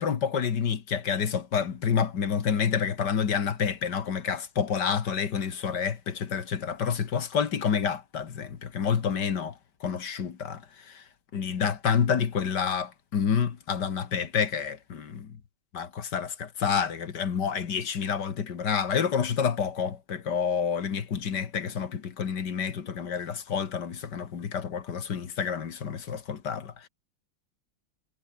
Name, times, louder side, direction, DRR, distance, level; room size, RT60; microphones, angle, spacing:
voice 1, 0.0-9.5 9.8-10.6 10.9-11.0 11.3-15.4 15.7-26.9, left 7 dB, 60° left, 2.2 m, -28 dB
omnidirectional pair, 2.2 m